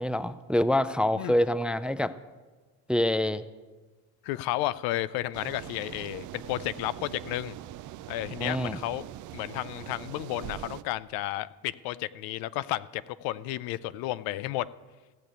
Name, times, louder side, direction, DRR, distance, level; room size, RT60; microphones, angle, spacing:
voice 1, 0.0-2.1 2.9-3.4 8.4-8.8, left 1 dB, 5° right, 14 dB, 0.3 m, -26 dB
voice 2, 4.2-7.6 8.1-9.1 9.3-14.7, left 15 dB, 80° left, 17 dB, 0.6 m, -32 dB
sound 1, 5.3-10.8, right 13 dB, 55° right, 0.6 m, -42 dB
15.5 x 6.7 x 9.1 m, 1.3 s
cardioid pair, 105°, 35 cm